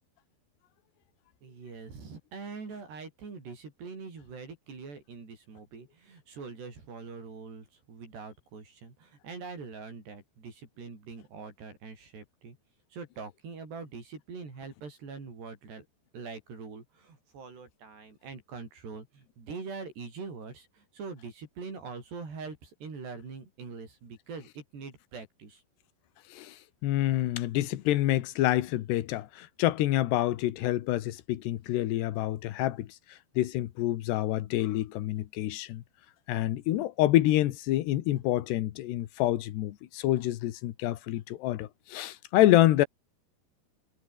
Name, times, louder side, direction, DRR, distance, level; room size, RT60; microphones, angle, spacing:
voice 1, 1.4-12.6 12.9-15.9 16.1-25.6, right 4 dB, 85° right, 9.4 m, -43 dB
voice 2, 26.8-32.9 33.4-35.8 36.3-42.9, left 15 dB, 85° left, 3.4 m, -27 dB
omnidirectional pair, 4.7 m